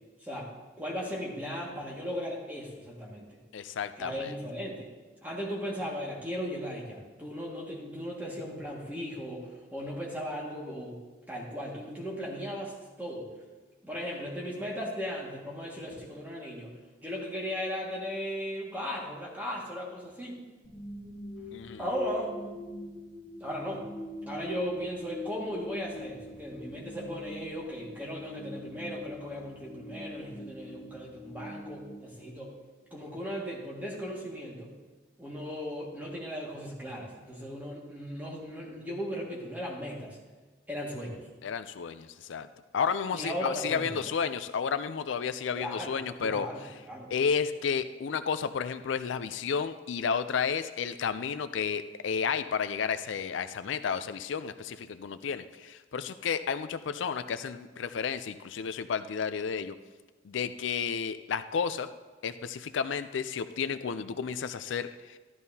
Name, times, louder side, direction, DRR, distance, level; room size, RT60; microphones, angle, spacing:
voice 1, 0.2-0.5 0.8-3.4 4.0-4.9 5.2-11.0 11.3-13.3 13.8-16.7 17.0-20.4 21.8-22.3 23.4-23.8 24.3-32.5 32.9-34.7 35.2-40.2 40.7-41.3 43.1-44.0 45.6-46.0 46.2-47.1, equal, 10° right, -3 dB, 1.9 m, -37 dB
voice 2, 3.5-4.3 21.5-21.8 41.4-42.5 42.7-46.5 47.1-59.8 60.2-61.9 62.2-65.2, left 6 dB, 85° left, 12 dB, 0.4 m, -32 dB
sound 1, 20.6-32.8, left 1 dB, 10° left, 2.5 m, -44 dB
13.0 x 12.0 x 2.8 m, 1.3 s
head